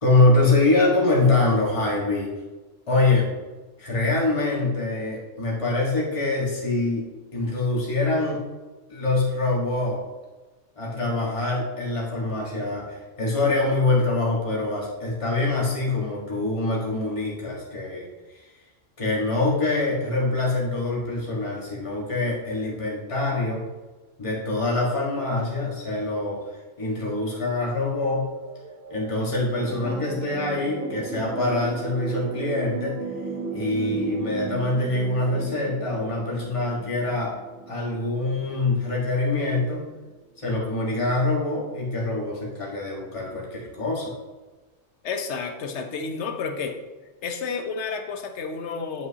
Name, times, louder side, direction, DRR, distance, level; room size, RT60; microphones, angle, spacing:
voice 1, 0.0-2.3 2.9-3.3 3.8-8.4 8.9-10.0 10.8-18.5 19.0-23.7 24.2-28.3 28.9-33.0 33.5-37.3 37.7-39.9 40.4-44.1, left 2 dB, 25° left, -5 dB, 1.6 m, -24 dB
sound 1, 28.3-39.0 39.9-40.0, right 4 dB, 75° right, 1.6 m, -36 dB
voice 2, 45.0-46.8 47.2-49.1, left 5 dB, 65° left, 5 dB, 1.1 m, -30 dB
7.9 x 7.7 x 2.8 m, 1.2 s
omnidirectional pair, 1.3 m